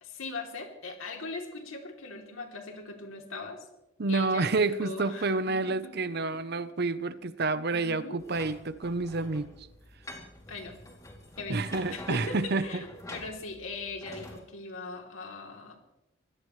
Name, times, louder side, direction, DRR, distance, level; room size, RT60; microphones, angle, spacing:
voice 1, 0.0-3.7 4.1-5.3 5.6-5.9 7.7-8.2 10.5-10.8 11.4-15.8, left 3 dB, 75° left, 2 dB, 3.1 m, -40 dB
voice 2, 4.0-9.5 11.5-12.8, right 3 dB, 50° right, 14 dB, 0.7 m, -29 dB
sound 1, 8.2-14.4, left 1 dB, 15° left, 2.7 m, -47 dB
24.5 x 17.0 x 3.2 m, 0.92 s
head